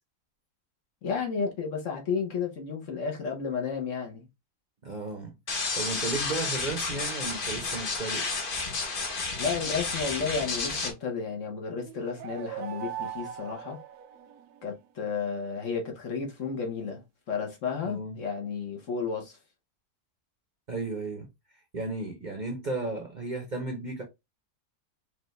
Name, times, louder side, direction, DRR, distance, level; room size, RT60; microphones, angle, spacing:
voice 1, 1.0-4.3 9.4-13.8 14.6-19.4, left 5 dB, 60° left, 1.3 m, -32 dB
voice 2, 4.8-5.3 5.7-8.3 17.8-18.2 20.7-21.3 21.7-24.0, right 3 dB, 40° right, 0.8 m, -34 dB
sound 1, 5.5-10.9, left 3 dB, 40° left, 1.0 m, -31 dB
sound 2, 11.8-14.7, right 10 dB, 85° right, 1.1 m, -40 dB
4.9 x 2.5 x 3.1 m
omnidirectional pair, 1.6 m